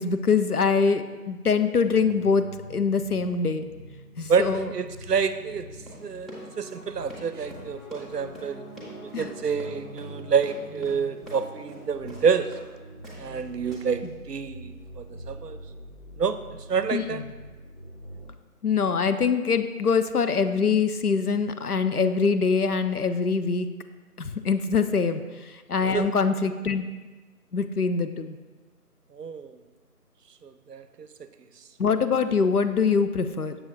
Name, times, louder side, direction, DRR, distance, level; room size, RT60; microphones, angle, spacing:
voice 1, 0.0-2.4 2.7-3.6 4.2-4.7 9.1-9.3 16.9-17.0 18.6-23.7 24.2-25.2 25.7-26.9 27.5-28.4 31.8-33.6, left 5 dB, 70° left, 10 dB, 0.6 m, -23 dB
sound 1, 1.8-18.3, right 1 dB, 50° left, 1.4 m, -44 dB
voice 2, 4.3-5.7 6.0-6.3 6.6-8.6 9.0-12.5 13.2-15.6 16.2-16.4 16.7-17.2 25.9-26.1 29.1-29.6 30.4-31.1, right 6 dB, 80° right, 11 dB, 0.6 m, -28 dB
Run, 5.8-12.7 13.0-13.4 13.7-14.1, right 1 dB, ahead, 0.7 m, -46 dB
7.0 x 6.9 x 2.6 m, 1.3 s
figure-of-eight pair, 170°, 47 cm